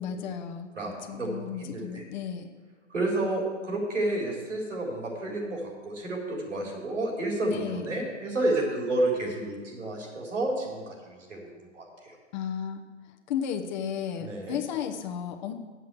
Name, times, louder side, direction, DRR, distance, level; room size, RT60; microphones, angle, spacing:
voice 1, 0.0-0.7 1.1-2.5 7.5-7.9 12.3-12.8 13.3-15.5, left 8 dB, 40° left, 4 dB, 0.9 m, -33 dB
voice 2, 0.7-2.0 2.9-12.1 14.2-14.6, right 2 dB, 80° right, -1 dB, 3.9 m, -31 dB
8.5 x 7.7 x 7.8 m, 1.5 s
hypercardioid pair, 125°, 36 cm